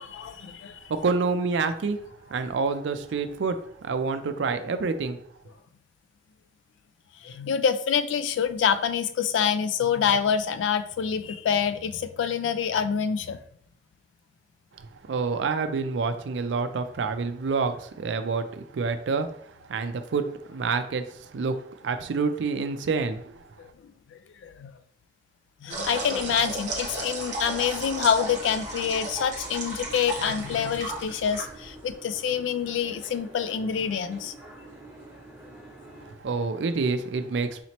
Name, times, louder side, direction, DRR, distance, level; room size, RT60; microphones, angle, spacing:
voice 1, 0.1-0.8 7.2-13.4 23.6-23.7 24.1-24.7 25.6-34.3, left 7 dB, 85° left, 12 dB, 0.3 m, -26 dB
voice 2, 0.9-2.0 2.3-5.2 15.1-19.3 19.7-21.6 21.8-23.3 36.2-37.6, right 4 dB, 75° right, 9 dB, 0.4 m, -27 dB
sound 1, 25.7-31.9, right 2 dB, 40° right, 1.0 m, -34 dB
Boat Water vehicle, 27.1-36.1, right 1 dB, 15° right, 1.0 m, -48 dB
4.1 x 3.0 x 2.8 m, 0.65 s
head